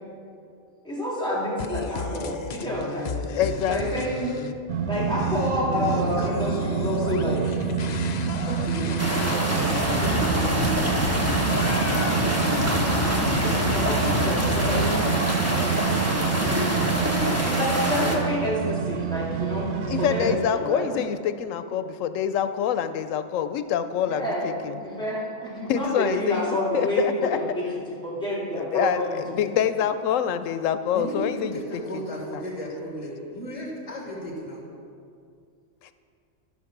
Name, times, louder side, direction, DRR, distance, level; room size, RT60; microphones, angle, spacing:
voice 1, 0.8-4.3 4.9-7.4 13.7-16.0 17.4-20.9 24.1-29.4, left 1 dB, 5° left, -6 dB, 2.4 m, -29 dB
sound 1, 1.6-4.5 4.9-14.9, left 6 dB, 70° left, 0.4 m, -33 dB
voice 2, 3.4-3.8 19.9-24.7 25.7-27.4 28.6-29.0 29.3-31.6 31.9-32.0, left 9 dB, 85° left, 12 dB, 1.0 m, -26 dB
sound 2, 4.7-20.4, right 7 dB, 65° right, 0.9 m, -27 dB
voice 3, 5.6-7.7 8.1-11.4 16.0-17.3 26.1-26.3 30.9-34.6, equal, 25° left, -4 dB, 2.4 m, -35 dB
sound 3, 9.0-18.2, equal, 10° right, 1.2 m, -26 dB
13.0 x 5.9 x 5.9 m, 2.4 s
omnidirectional pair, 1.3 m